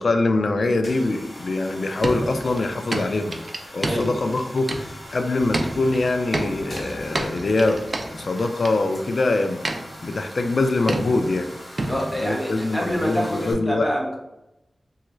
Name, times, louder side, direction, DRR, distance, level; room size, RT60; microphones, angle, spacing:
voice 1, 0.0-3.4 3.7-7.8 8.1-9.6 10.0-11.5 12.1-13.9, left 2 dB, 60° left, 6 dB, 0.3 m, -23 dB
sound 1, 0.7-13.5, left 1 dB, 45° left, 1.2 m, -40 dB
sound 2, 2.0-5.2 5.5-8.7 9.6-10.3 10.9-11.5 11.8-12.3, right 2 dB, 45° right, 0.4 m, -30 dB
voice 2, 3.8-4.2 11.9-14.2, equal, ahead, -2 dB, 0.8 m, -26 dB
3.2 x 2.3 x 3.0 m, 0.93 s
wide cardioid pair, 105°, 0 cm